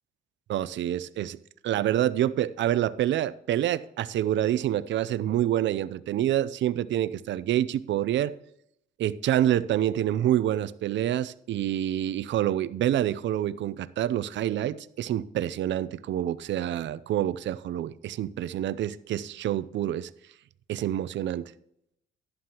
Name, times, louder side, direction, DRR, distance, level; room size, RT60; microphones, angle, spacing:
voice 1, 0.5-1.4 1.6-8.3 9.0-20.1 20.7-21.5, right 12 dB, 65° right, 0.5 m, -27 dB
11.5 x 11.0 x 2.9 m
cardioid pair, 90°, 20 cm